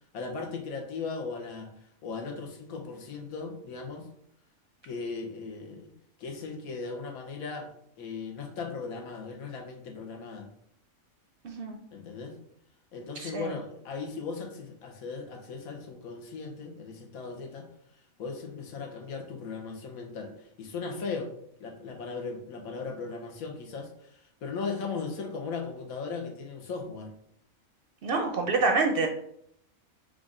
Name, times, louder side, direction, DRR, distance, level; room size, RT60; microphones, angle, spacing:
voice 1, 0.1-4.1 4.8-5.9 6.2-7.7 8.0-10.5 11.9-12.4 12.9-17.7 18.2-21.3 21.6-27.1, left 4 dB, 85° left, 1 dB, 1.3 m, -37 dB
voice 2, 11.4-11.8 13.2-13.6 28.0-29.1, right 3 dB, 60° right, 4 dB, 0.6 m, -27 dB
5.0 x 2.5 x 3.8 m, 0.70 s
omnidirectional pair, 1.5 m